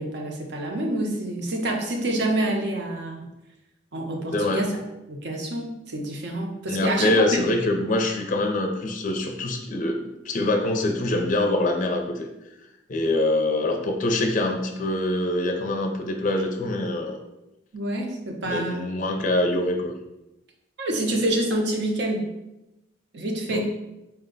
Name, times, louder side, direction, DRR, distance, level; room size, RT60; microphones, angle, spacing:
voice 1, 0.0-3.3 3.9-4.8 5.1-7.4 17.7-18.8 20.8-22.2 23.1-23.6, right 1 dB, 65° right, 1 dB, 0.7 m, -27 dB
voice 2, 6.7-10.0 10.2-12.3 12.9-17.2 18.4-19.9 23.5-23.6, left 1 dB, 45° left, 3 dB, 0.5 m, -24 dB
4.4 x 2.2 x 3.8 m, 0.94 s
head